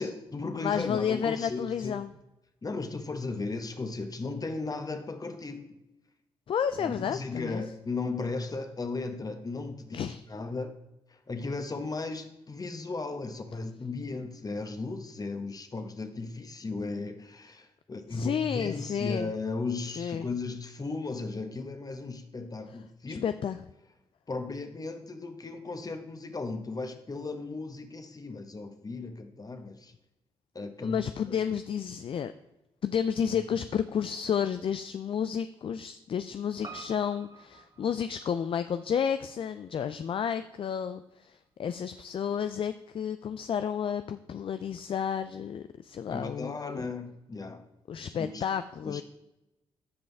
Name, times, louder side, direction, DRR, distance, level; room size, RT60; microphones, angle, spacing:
voice 1, 0.0-2.0 2.6-5.7 6.8-10.7 11.1-23.2 24.3-29.9 30.5-31.4 46.1-47.6 48.0-48.4 48.8-49.0, left 3 dB, 35° left, 7 dB, 1.4 m, -36 dB
voice 2, 0.6-2.1 6.5-7.6 9.9-10.2 18.1-19.3 20.0-20.3 23.1-23.6 30.8-32.3 32.8-46.8 47.9-49.0, left 8 dB, 55° left, 11 dB, 0.4 m, -31 dB
Piano, 36.6-41.1 41.4-41.5, right 5 dB, 35° right, 1.8 m, -50 dB
14.0 x 5.3 x 3.4 m, 0.93 s
supercardioid pair, 50°, 11 cm